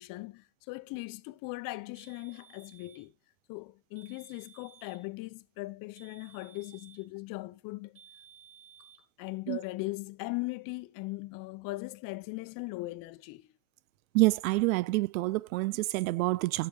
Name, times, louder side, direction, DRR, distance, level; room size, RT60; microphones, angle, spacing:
voice 1, 0.0-3.1 3.5-8.0 9.2-13.5, left 22 dB, 50° left, 0.8 m, -39 dB
sound 1, 1.9-3.1 3.9-5.1 5.9-7.1 7.9-9.1, right 8 dB, 60° right, 3.3 m, -57 dB
voice 2, 14.1-16.7, right 21 dB, 75° right, 0.5 m, -27 dB
11.5 x 6.8 x 3.9 m
hypercardioid pair, 100°, 41 cm